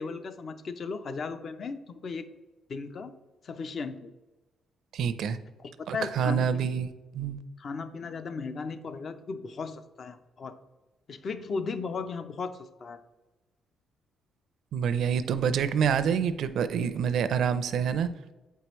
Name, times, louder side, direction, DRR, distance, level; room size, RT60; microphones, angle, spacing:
voice 1, 0.0-2.3 2.7-3.1 3.4-4.1 5.6-6.8 7.6-10.6 11.1-13.0, left 4 dB, 50° left, 10 dB, 0.5 m, -36 dB
voice 2, 4.9-5.4 5.9-7.4 14.7-18.1, right 7 dB, 70° right, 11 dB, 0.4 m, -27 dB
8.1 x 4.6 x 3.0 m, 1.1 s
cardioid pair, 100°, 0 cm